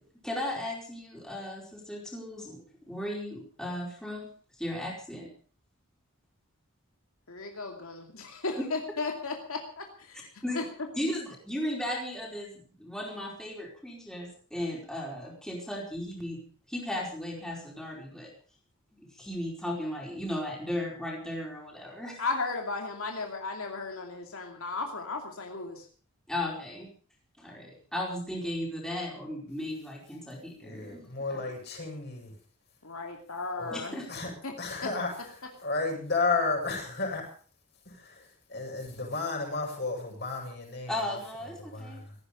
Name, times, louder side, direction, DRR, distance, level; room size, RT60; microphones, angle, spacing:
voice 1, 0.2-4.3 4.6-5.3 10.4-10.7 10.9-16.4 16.7-18.3 18.9-22.2 26.3-26.9 27.4-31.0 31.3-31.5 33.7-34.1 40.9-42.0, left 1 dB, 5° left, -2 dB, 4.6 m, -36 dB
voice 2, 7.3-10.3 10.5-10.6 22.2-25.9 32.8-34.0 34.4-34.5, left 3 dB, 75° left, 3 dB, 2.6 m, -35 dB
voice 3, 30.6-32.3 33.6-33.8 34.1-37.2 37.8-41.2 41.6-42.2, left 3 dB, 50° left, 1 dB, 8.0 m, -33 dB
17.5 x 15.0 x 5.3 m, 0.43 s
head